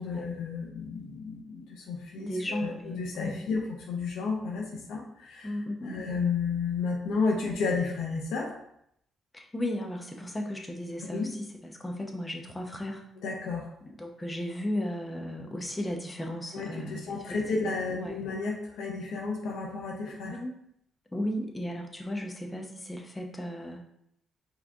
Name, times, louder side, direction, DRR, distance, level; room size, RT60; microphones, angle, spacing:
voice 1, 0.0-8.5 11.0-11.3 13.2-13.6 16.5-20.4, left 4 dB, 80° left, -1 dB, 0.8 m, -32 dB
voice 2, 2.2-3.4 5.4-6.0 9.3-11.3 11.6-13.0 14.0-17.2 17.9-18.1 20.2-20.5 21.1-23.8, left 1 dB, 15° left, 2 dB, 0.8 m, -35 dB
4.8 x 3.0 x 3.4 m, 0.74 s
cardioid pair, 90°, 0 cm